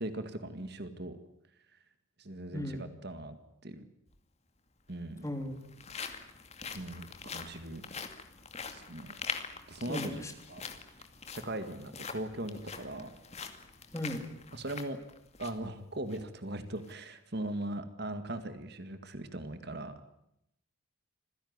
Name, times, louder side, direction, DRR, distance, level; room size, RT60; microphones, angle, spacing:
voice 1, 0.0-1.2 2.2-3.4 3.6-3.8 4.9-5.3 6.7-7.8 8.7-9.1 9.7-10.2 10.5-10.6 11.3-13.1 14.5-15.0 15.4-20.0, right 1 dB, 50° right, 10 dB, 2.0 m, -39 dB
voice 2, 2.5-2.8 5.2-5.5 9.9-10.3 13.9-14.4, left 1 dB, 15° left, 5 dB, 3.4 m, -36 dB
sound 1, 4.1-4.2 5.1-15.7 16.1-16.2 16.7-16.9, left 5 dB, 30° left, 2.3 m, -44 dB
26.5 x 16.5 x 9.6 m, 0.80 s
head